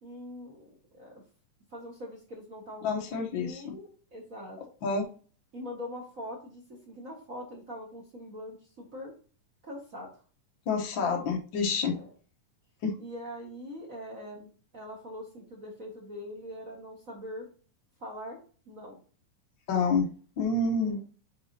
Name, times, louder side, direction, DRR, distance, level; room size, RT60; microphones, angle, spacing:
voice 1, 0.0-1.2 1.7-4.6 5.5-9.1 9.6-10.1 11.9-12.1 13.0-14.5 14.7-17.5 18.0-18.4 18.6-19.0 20.8-21.0, equal, 40° right, -2 dB, 1.3 m, -43 dB
voice 2, 2.8-3.7 4.8-5.1 10.7-12.0 12.8-13.0 19.7-20.1 20.4-21.0, left 4 dB, 75° left, 0 dB, 1.1 m, -28 dB
9.2 x 4.1 x 2.8 m, 0.40 s
omnidirectional pair, 3.7 m